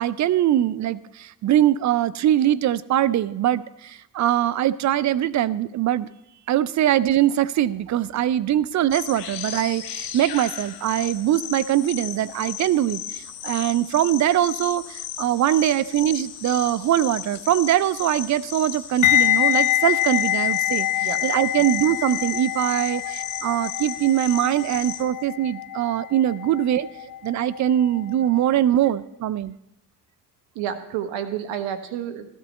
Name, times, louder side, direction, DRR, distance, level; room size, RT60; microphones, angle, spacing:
voice 1, 0.0-6.1 6.5-26.9 27.2-29.6, right 12 dB, 40° right, 17 dB, 0.4 m, -22 dB
sound 1, 8.9-25.0, left 11 dB, 90° left, 0.9 m, -35 dB
sound 2, 19.0-28.0 28.2-28.5, left 13 dB, 40° left, 0.7 m, -25 dB
voice 2, 30.5-32.3, right 9 dB, 65° right, 8 dB, 1.2 m, -31 dB
13.0 x 13.0 x 3.1 m, 0.82 s
hypercardioid pair, 55°, 48 cm